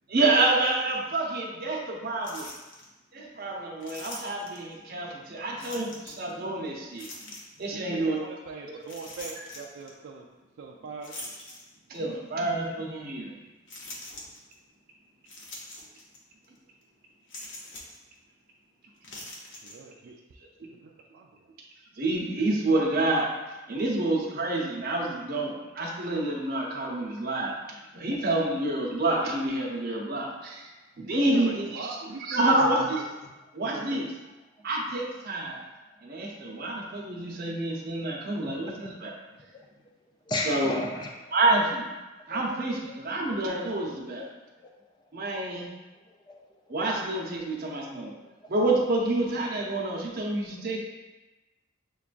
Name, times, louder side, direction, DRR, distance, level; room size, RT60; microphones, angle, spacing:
voice 1, 0.1-2.5 3.1-7.1 7.6-8.2 8.7-8.8 11.9-13.3 22.0-23.3 23.7-30.7 31.0-31.9 32.2-33.0 33.5-34.0 34.6-35.6 36.0-39.1 40.5-40.7 41.3-41.9 42.3-44.2 45.1-45.7 46.7-48.1 48.5-50.8, right 2 dB, 50° right, -2 dB, 0.7 m, -28 dB
sound 1, 2.2-2.9 3.8-4.7 5.6-6.3 7.0-7.7 8.8-9.9 11.0-12.1 12.6-12.7 13.7-14.6 15.3-16.2 16.4-16.6 17.3-18.0 19.0-19.8, left 1 dB, 65° left, 0.8 m, -43 dB
voice 2, 7.7-10.3 10.6-11.4 19.6-20.1 20.8-21.4 31.3-32.9 33.6-34.1, right 4 dB, 65° right, -2 dB, 0.4 m, -41 dB
voice 3, 38.3-38.8 39.5-39.7 40.2-41.8 42.3-42.5 42.9-43.0 44.1-45.5 45.9-46.7 47.7-48.5, left 1 dB, 20° left, 0 dB, 0.4 m, -38 dB
6.7 x 2.3 x 2.5 m, 1.1 s
head